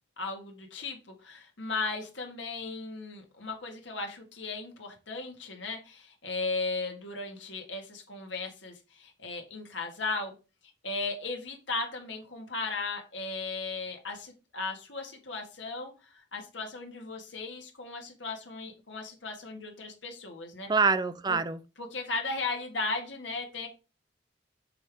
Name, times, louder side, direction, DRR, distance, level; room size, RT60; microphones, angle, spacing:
voice 1, 0.2-10.3 10.8-20.7 21.3-21.4 21.8-23.7, left 3 dB, 85° left, 1.8 m, -36 dB
voice 2, 20.7-21.6, right 4 dB, 25° right, 0.4 m, -25 dB
6.9 x 3.6 x 4.7 m
head